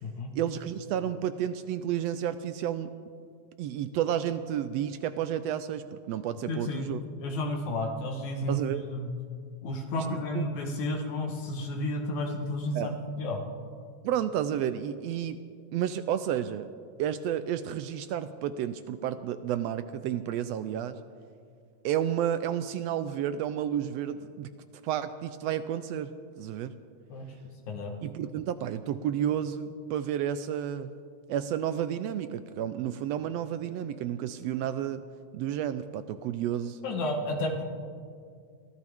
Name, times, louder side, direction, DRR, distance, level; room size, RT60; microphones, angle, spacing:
voice 1, 0.3-2.9 3.6-7.0 8.5-8.9 10.0-10.4 12.7-12.9 14.0-15.4 15.7-16.7 17.0-21.0 21.8-24.5 24.8-26.1 26.4-26.7 28.0-30.9 31.3-35.0 35.3-36.8, right 10 dB, 80° right, 11 dB, 1.5 m, -31 dB
voice 2, 6.5-6.9 7.2-9.1 9.6-13.4 27.1-27.3 27.7-27.9 36.8-37.6, left 1 dB, 80° left, 2 dB, 2.7 m, -32 dB
23.5 x 16.0 x 3.5 m, 2.2 s
omnidirectional pair, 3.3 m